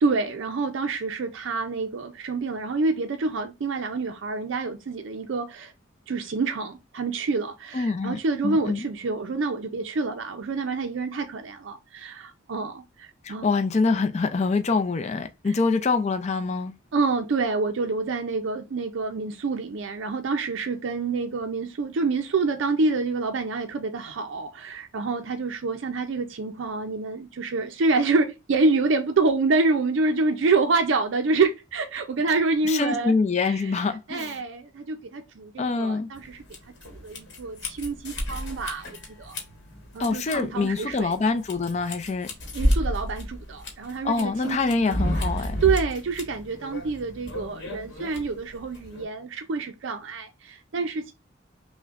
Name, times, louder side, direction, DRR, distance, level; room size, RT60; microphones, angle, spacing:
voice 1, 0.0-5.7 6.1-13.5 15.4-15.6 16.9-36.4 37.0-39.4 39.9-41.1 42.5-45.2 45.6-51.1, right 3 dB, 65° right, 0.4 m, -27 dB
voice 2, 7.7-8.8 13.2-16.7 32.6-34.4 35.6-36.1 40.0-42.3 44.0-45.6, left 4 dB, 35° left, 0.4 m, -25 dB
sound 1, 36.1-49.0, equal, 55° left, 1.1 m, -32 dB
5.8 x 2.1 x 2.4 m
head